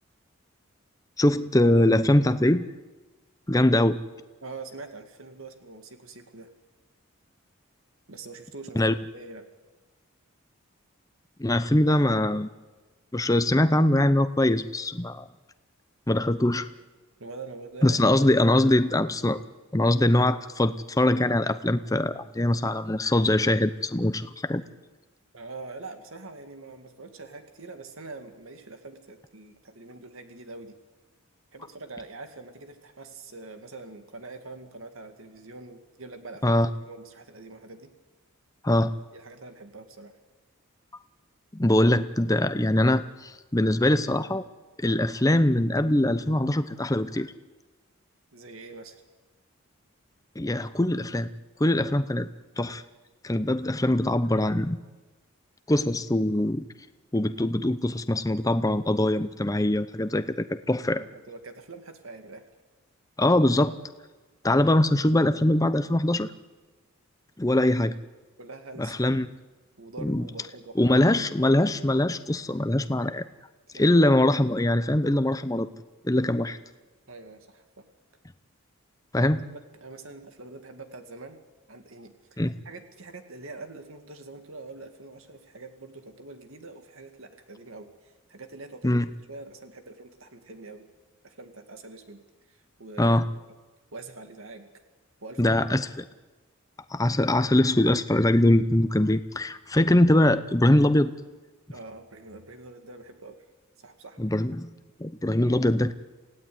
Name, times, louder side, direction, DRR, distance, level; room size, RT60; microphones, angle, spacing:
voice 1, 1.2-2.6 3.5-4.0 8.8-9.0 11.4-12.5 13.1-15.2 16.1-16.7 17.8-19.4 19.7-24.6 36.4-36.7 38.6-38.9 41.5-44.5 44.8-47.3 50.4-51.3 51.6-52.3 52.6-52.8 53.2-54.8 55.7-56.7 57.1-61.0 63.2-63.7 64.4-66.3 67.4-68.0 68.8-69.3 70.0-70.3 70.8-73.2 73.7-75.7 76.0-76.6 79.1-79.4 82.4-82.5 88.8-89.1 93.0-93.2 95.4-96.1 96.9-101.1 104.2-104.7 105.0-105.9, left 1 dB, 15° left, 11 dB, 0.7 m, -22 dB
voice 2, 4.4-6.5 8.1-9.5 17.2-18.0 25.3-30.8 31.5-36.6 36.9-37.9 39.1-40.2 48.3-49.0 60.9-62.4 68.4-69.2 69.8-71.1 73.7-73.8 77.1-77.9 79.5-81.4 81.7-89.0 89.3-90.9 91.2-93.1 93.9-94.7 95.2-95.5 101.7-103.4 103.8-104.2, right 3 dB, 70° right, 7 dB, 2.3 m, -44 dB
28.0 x 16.5 x 9.5 m, 1.3 s
head